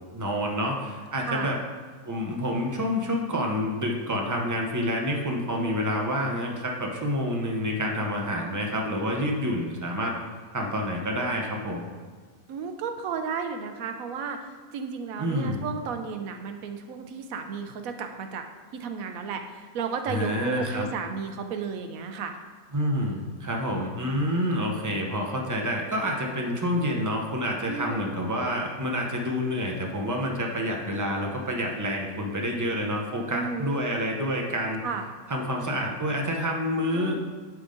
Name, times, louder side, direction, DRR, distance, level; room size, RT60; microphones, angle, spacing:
voice 1, 0.1-1.6 2.0-10.1 10.5-11.9 15.2-15.6 20.1-20.9 22.7-34.8 35.3-37.1, equal, 20° right, 0 dB, 0.5 m, -28 dB
voice 2, 12.5-14.5 14.7-18.4 18.8-22.4 27.7-28.1 33.3-33.9 34.8-35.0 36.9-37.1, right 5 dB, 70° right, 6 dB, 1.0 m, -33 dB
10.5 x 3.7 x 3.8 m, 1.5 s
omnidirectional pair, 1.5 m